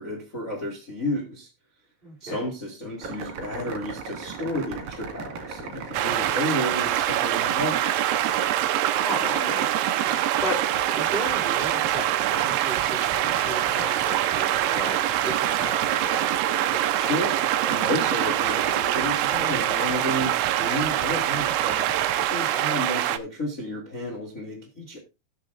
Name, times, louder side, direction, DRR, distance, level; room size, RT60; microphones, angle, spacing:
voice 1, 0.0-1.5 2.2-7.9 17.0-25.0, left 1 dB, 65° left, 0.7 m, -32 dB
voice 2, 2.0-2.4 9.0-9.7 10.4-10.6 10.9-15.0 15.2-16.3 22.3-22.9, equal, 25° right, 1.3 m, -35 dB
sound 1, 3.0-22.3, right 5 dB, 50° right, 2.6 m, -34 dB
sound 2, 5.9-23.2, right 14 dB, 85° right, 2.2 m, -25 dB
18.5 x 6.7 x 2.5 m
omnidirectional pair, 5.5 m